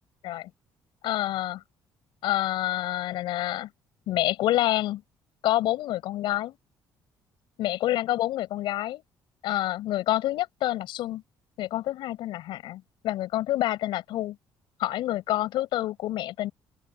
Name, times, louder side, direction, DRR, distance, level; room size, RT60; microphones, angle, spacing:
voice 1, 1.0-1.6 2.2-3.7 4.1-5.0 5.4-6.6 7.6-9.0 9.4-11.2 11.6-14.4 14.8-16.5, left 14 dB, 80° left, 5.1 m, -27 dB
open air
cardioid pair, 110°, 8 cm